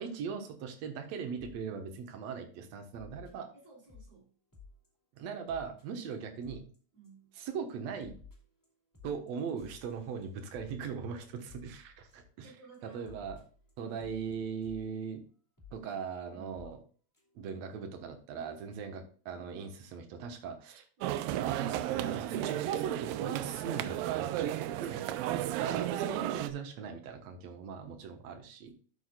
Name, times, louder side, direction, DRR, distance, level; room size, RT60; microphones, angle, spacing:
voice 1, 0.0-3.5 5.1-6.7 7.4-8.1 9.0-12.5 12.8-13.4 13.8-15.2 15.7-16.8 17.4-20.9 21.3-25.0 25.6-28.8, right 6 dB, 60° right, 5 dB, 1.9 m, -39 dB
sound 1, 1.4-1.6 2.0-2.2 2.9-4.1 4.5-4.9 5.2-5.3 5.5-5.8 6.1-6.2 6.4-6.8 7.0-7.4 7.7-12.4 12.7-12.8 13.0-14.9 15.6-15.9 16.5-16.8 17.1-17.2 17.5-17.6, left 5 dB, 10° left, 1.3 m, -55 dB
voice 2, 3.5-4.3 6.0-6.1 6.9-7.3 12.4-13.2 16.3-16.6, right 5 dB, 45° right, -3 dB, 4.1 m, -55 dB
sound 2, 21.0-26.5, right 13 dB, 80° right, 2.1 m, -34 dB
12.5 x 6.3 x 2.3 m, 0.42 s
omnidirectional pair, 4.4 m